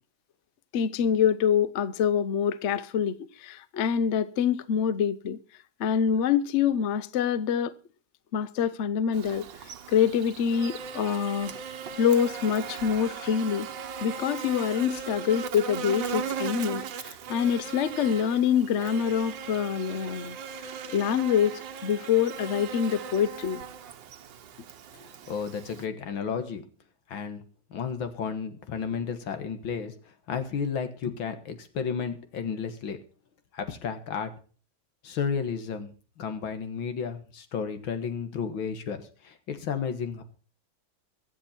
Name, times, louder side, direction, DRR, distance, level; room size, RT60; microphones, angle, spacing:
voice 1, 0.7-5.4 5.8-7.7 8.3-11.5 12.0-13.7 14.0-23.6, left 8 dB, 55° left, 0.8 m, -26 dB
Buzz, 9.1-25.9, right 6 dB, 70° right, 1.7 m, -38 dB
voice 2, 25.0-26.6 27.1-27.4 27.7-29.9 30.3-33.0 33.5-34.3 35.0-35.9 36.2-40.2, left 6 dB, 85° left, 2.4 m, -32 dB
23.5 x 7.9 x 4.4 m
omnidirectional pair, 2.1 m